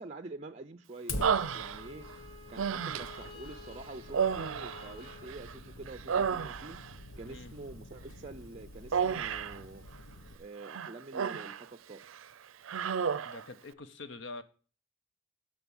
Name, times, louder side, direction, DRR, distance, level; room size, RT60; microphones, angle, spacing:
voice 1, 0.0-2.1 2.5-6.8 7.2-9.8 10.4-12.3, right 2 dB, 30° right, 0.5 m, -47 dB
Fire, 1.1-10.4, left 2 dB, 85° left, 1.2 m, -46 dB
Human voice, 1.2-2.1 2.6-3.3 4.1-5.5 5.9-6.9 8.9-9.6 10.6-11.7 12.0-12.2 12.7-13.4, right 7 dB, 85° right, 0.5 m, -32 dB
Bowed string instrument, 1.3-6.2, left 4 dB, 20° left, 4.5 m, -52 dB
voice 2, 13.2-14.4, left 3 dB, 65° left, 0.9 m, -45 dB
13.0 x 5.0 x 7.1 m
head